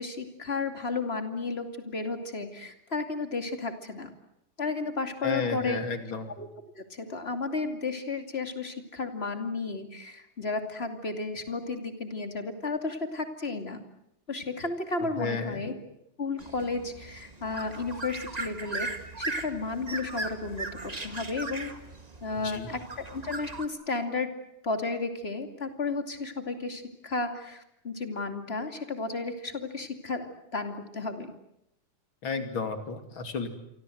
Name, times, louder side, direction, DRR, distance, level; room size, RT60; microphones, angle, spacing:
voice 1, 0.0-4.1 4.6-5.8 6.4-6.5 6.8-13.8 14.3-15.7 16.2-18.9 19.2-21.7 22.2-24.3 24.6-31.3, left 3 dB, 30° left, 7 dB, 2.9 m, -33 dB
voice 2, 5.2-6.3 15.2-15.6 22.4-22.7 32.2-33.5, left 4 dB, 80° left, 7 dB, 3.6 m, -32 dB
sound 1, 16.4-23.7, right 2 dB, 20° right, 2.0 m, -38 dB
28.0 x 24.5 x 7.9 m, 0.79 s
omnidirectional pair, 2.2 m